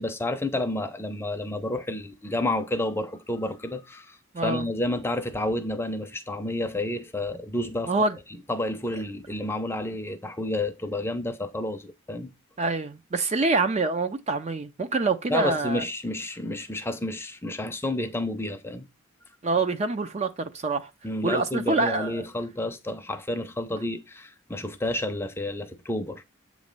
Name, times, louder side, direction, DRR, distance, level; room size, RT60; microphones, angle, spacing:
voice 1, 0.0-4.2 4.4-7.9 8.5-12.3 15.3-18.9 21.0-26.2, left 1 dB, 10° left, 0.6 m, -30 dB
voice 2, 12.6-15.8 19.4-20.9 21.2-22.2, right 3 dB, 30° right, 0.4 m, -26 dB
7.9 x 3.1 x 5.2 m
head